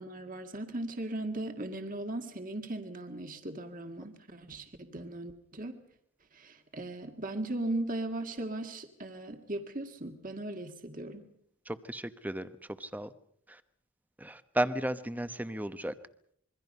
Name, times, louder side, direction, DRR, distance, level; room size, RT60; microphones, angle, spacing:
voice 1, 0.0-5.8 6.3-11.3, right 1 dB, 40° right, 5 dB, 1.9 m, -38 dB
voice 2, 11.7-12.5 12.8-13.1 13.5-13.6 14.2-15.9, right 1 dB, 10° right, 11 dB, 0.9 m, -34 dB
26.5 x 23.0 x 5.5 m, 0.67 s
head